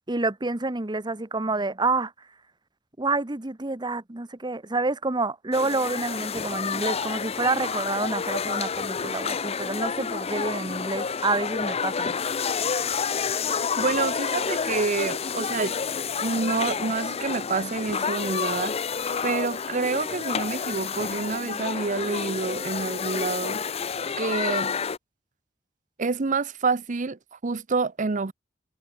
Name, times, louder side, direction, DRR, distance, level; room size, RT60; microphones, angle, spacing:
voice 1, 0.1-2.1 3.0-12.1, right 3 dB, 25° right, 1.1 m, -28 dB
sound 1, 5.5-25.0, left 6 dB, 35° left, 0.6 m, -29 dB
voice 2, 13.8-15.7 16.2-18.7 19.2-23.6 24.2-24.8 26.0-28.3, right 4 dB, 40° right, 0.7 m, -28 dB
head